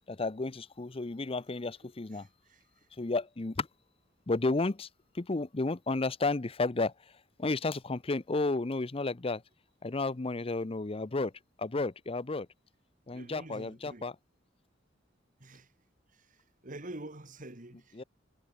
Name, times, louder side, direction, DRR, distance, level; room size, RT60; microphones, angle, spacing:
voice 1, 0.1-2.3 2.9-3.7 4.3-4.9 5.1-6.9 7.4-9.4 9.8-11.3 11.6-12.5 13.1-14.2 17.9-18.0, left 3 dB, 30° left, 0.7 m, -32 dB
voice 2, 13.1-14.0 15.4-15.7 16.6-17.8, right 1 dB, 45° right, 2.3 m, -45 dB
head